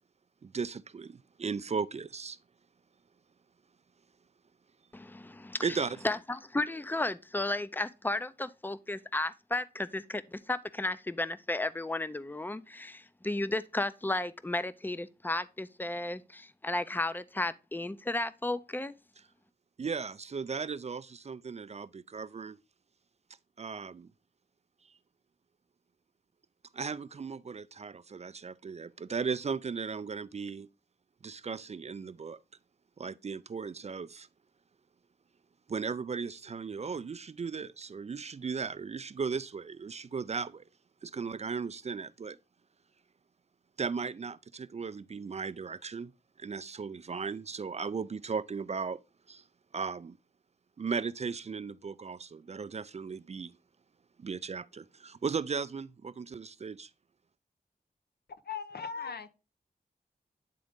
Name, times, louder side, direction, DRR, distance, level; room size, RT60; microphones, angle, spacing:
voice 1, 0.4-2.4 5.6-6.0 19.8-22.6 23.6-24.1 26.7-30.7 31.2-32.4 33.0-34.3 35.7-40.6 41.0-42.4 43.8-46.1 46.4-49.0 49.3-49.4 49.7-50.2 50.8-53.5 54.2-56.9, right 5 dB, 40° right, 0.4 m, -36 dB
voice 2, 4.9-5.8 6.0-18.9, left 2 dB, 10° left, 0.5 m, -34 dB
voice 3, 58.3-59.3, left 6 dB, 75° left, 0.7 m, -39 dB
9.1 x 3.8 x 3.6 m
wide cardioid pair, 65°, 17 cm